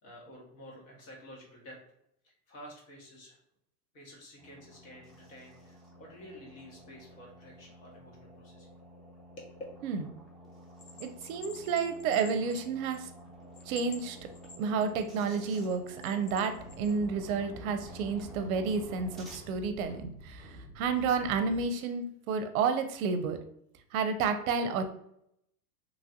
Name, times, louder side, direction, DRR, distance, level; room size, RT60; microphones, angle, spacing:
voice 1, 0.0-1.8 2.2-3.4 3.9-8.7 9.4-9.5, equal, 60° left, -1 dB, 1.4 m, -51 dB
sound 1, 4.4-19.4, equal, ahead, 0.4 m, -51 dB
Bell, 10.8-13.2 13.5-15.1 15.6-17.0, left 4 dB, 40° left, 0.8 m, -49 dB
voice 2, 11.0-13.1 13.7-14.2 14.6-23.4 23.9-24.9, right 5 dB, 60° right, 8 dB, 0.5 m, -31 dB
sound 2, 16.6-21.6, equal, 20° right, 1.2 m, -50 dB
3.0 x 2.4 x 2.7 m, 0.76 s
hypercardioid pair, 115°, 47 cm